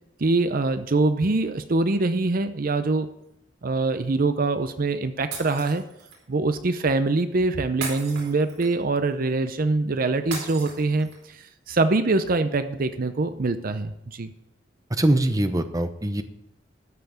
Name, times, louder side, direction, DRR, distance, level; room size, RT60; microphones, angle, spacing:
voice 1, 0.2-3.1 3.6-5.8 6.3-11.1 11.4-14.3, right 3 dB, 50° right, 10 dB, 0.6 m, -24 dB
Shatter, 5.3-6.2 7.8-8.9 10.3-11.3, right 4 dB, 90° right, 4.4 m, -36 dB
voice 2, 14.9-16.2, right 1 dB, 20° right, 8 dB, 0.8 m, -22 dB
13.5 x 5.8 x 8.7 m, 0.83 s
head